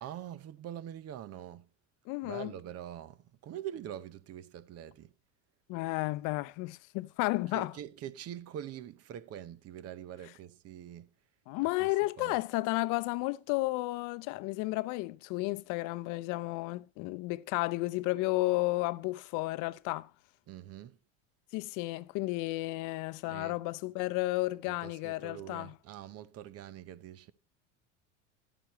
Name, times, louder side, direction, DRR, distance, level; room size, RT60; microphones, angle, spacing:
voice 1, 0.0-1.7 2.2-3.2 3.4-5.1 7.5-11.1 12.2-12.3 20.5-21.0 23.3-23.6 24.6-27.3, right 11 dB, 40° right, 0.8 m, -44 dB
voice 2, 2.1-2.5 5.7-7.7 11.5-20.1 21.5-25.7, left 21 dB, 55° left, 0.7 m, -32 dB
12.5 x 9.0 x 3.0 m
supercardioid pair, 100°, 37 cm